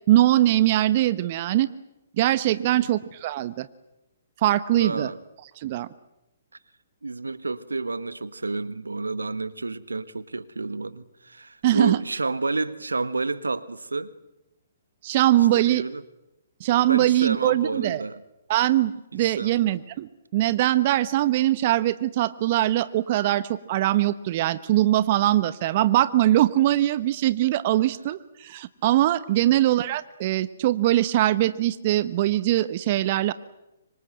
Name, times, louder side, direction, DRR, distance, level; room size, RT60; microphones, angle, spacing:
voice 1, 0.1-1.7 2.2-3.7 4.4-5.1 5.6-5.9 11.6-12.0 15.0-15.8 16.6-18.0 18.5-33.3, right 14 dB, 45° right, 15 dB, 1.0 m, -22 dB
voice 2, 2.6-2.9 4.7-5.2 7.0-14.1 15.5-16.0 16.9-18.2 19.2-19.8 29.3-29.6, right 3 dB, 85° right, 16 dB, 1.3 m, -30 dB
25.5 x 25.0 x 7.9 m, 0.91 s
figure-of-eight pair, 130°, 0 cm